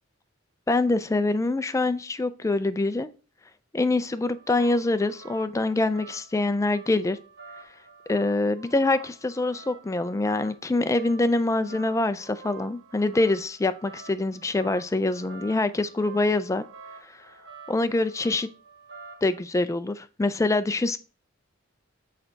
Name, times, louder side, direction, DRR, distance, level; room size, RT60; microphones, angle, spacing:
voice 1, 0.7-3.1 3.7-7.2 8.1-16.6 17.7-18.5 19.2-21.0, left 2 dB, 15° left, 11 dB, 0.4 m, -25 dB
sound 1, 4.0-19.4, right 5 dB, 65° right, 1.6 m, -48 dB
6.5 x 4.4 x 3.9 m, 0.35 s
head